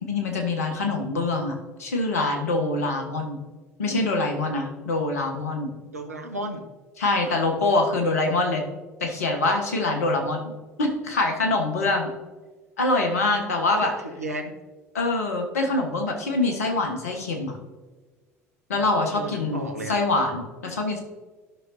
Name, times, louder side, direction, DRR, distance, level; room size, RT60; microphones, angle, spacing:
voice 1, 0.0-3.4 3.8-5.7 7.0-8.6 9.0-10.5 10.8-12.1 12.8-13.9 14.9-17.6 18.7-21.0, left 2 dB, 75° left, 3 dB, 1.4 m, -24 dB
voice 2, 5.9-6.6 13.8-14.5 19.1-20.0, right 1 dB, 85° right, 5 dB, 0.9 m, -33 dB
12.5 x 6.0 x 2.7 m, 1.3 s
figure-of-eight pair, 65°, 8 cm